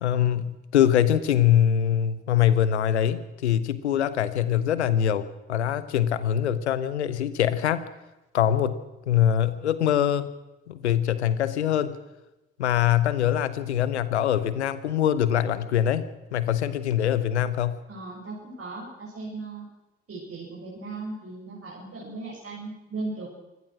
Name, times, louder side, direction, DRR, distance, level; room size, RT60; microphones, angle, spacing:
voice 1, 0.0-7.8 8.3-8.8 9.1-10.3 10.7-12.0 12.6-16.0 16.3-17.8, left 10 dB, 85° left, 15 dB, 0.9 m, -23 dB
voice 2, 17.9-19.6 20.1-23.3, right 3 dB, 45° right, -4 dB, 7.1 m, -37 dB
24.0 x 17.5 x 6.2 m, 0.99 s
figure-of-eight pair, 45°, 33 cm